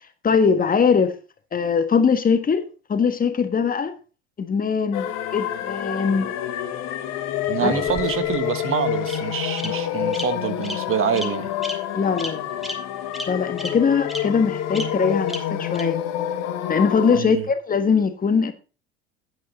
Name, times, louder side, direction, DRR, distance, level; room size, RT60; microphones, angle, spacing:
voice 1, 0.2-1.1 1.5-2.6 2.9-3.9 4.4-5.1 5.3-6.3 7.6-7.8 11.9-12.5 13.3-16.0 16.7-18.5, left 5 dB, 25° left, 1.5 m, -21 dB
sound 1, 4.9-17.2, left 10 dB, 55° left, 1.4 m, -28 dB
voice 2, 7.5-11.5 17.1-17.4, right 8 dB, 40° right, 1.4 m, -26 dB
Bird vocalization bird call bird song, 7.6-8.4 9.1-9.2 9.6-9.7 10.1-10.2 10.6-10.8 11.1-11.3 11.6-11.7 12.2-12.3 12.6-12.7 13.1-13.2 13.6-13.7 14.1-14.2 14.7-14.8 15.3-15.4 15.7-15.8, equal, ahead, 2.5 m, -31 dB
9.6 x 8.4 x 4.1 m
hypercardioid pair, 75°, 31 cm